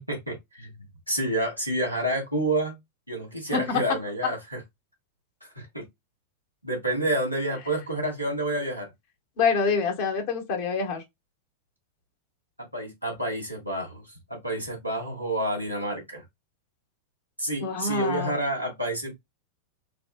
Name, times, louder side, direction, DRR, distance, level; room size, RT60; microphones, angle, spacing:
voice 1, 0.1-0.7 1.1-2.8 3.1-4.6 5.5-5.8 6.6-8.9 12.7-16.2 17.4-19.1, right 1 dB, 90° right, 1.5 m, -29 dB
voice 2, 9.4-11.0 17.6-18.4, left 5 dB, 50° left, 1.3 m, -26 dB
4.1 x 2.3 x 2.4 m
figure-of-eight pair, 90°, 0 cm